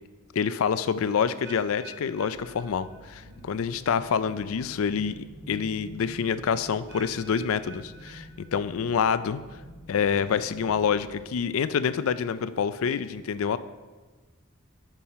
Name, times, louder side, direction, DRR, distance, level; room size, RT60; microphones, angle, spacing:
voice 1, 0.3-9.4 9.9-13.6, left 6 dB, 75° left, 14 dB, 0.4 m, -27 dB
sound 1, 1.4-3.4 3.7-4.1 4.8-4.9 6.9-8.8 9.2-9.6 10.2-10.3, right 1 dB, 55° right, 1.8 m, -49 dB
sound 2, 2.3-11.4, equal, 25° right, 1.4 m, -48 dB
10.0 x 5.7 x 4.2 m, 1.3 s
head